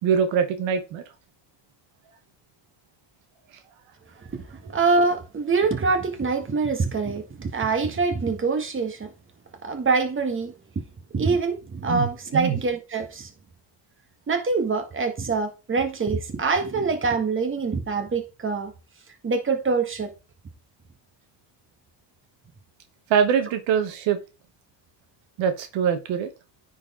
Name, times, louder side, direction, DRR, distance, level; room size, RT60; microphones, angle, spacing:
voice 1, 0.0-1.0 11.9-12.1 12.3-12.6 23.1-24.2 25.4-26.3, right 7 dB, 75° right, 1.4 m, -23 dB
voice 2, 4.3-9.1 9.6-10.5 11.1-13.3 14.3-18.7 19.2-20.1, right 4 dB, 25° right, 1.8 m, -25 dB
9.6 x 4.6 x 3.8 m
cardioid pair, 105°, 46 cm